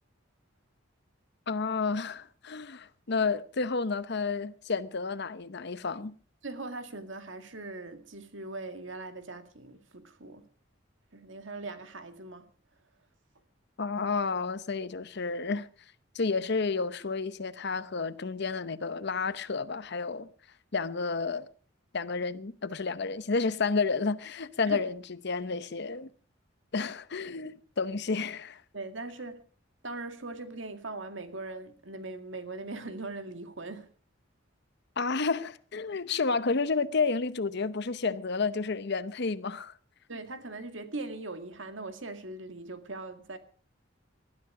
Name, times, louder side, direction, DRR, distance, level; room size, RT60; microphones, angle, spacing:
voice 1, 1.5-6.1 13.8-15.7 16.1-20.3 20.7-21.5 21.9-26.1 26.7-28.6 35.0-39.7, left 4 dB, 60° left, 0.8 m, -31 dB
voice 2, 6.4-10.4 11.1-12.5 24.7-24.8 28.7-29.4 29.8-33.9 40.1-43.4, right 2 dB, 65° right, 2.0 m, -40 dB
19.5 x 13.0 x 4.8 m
head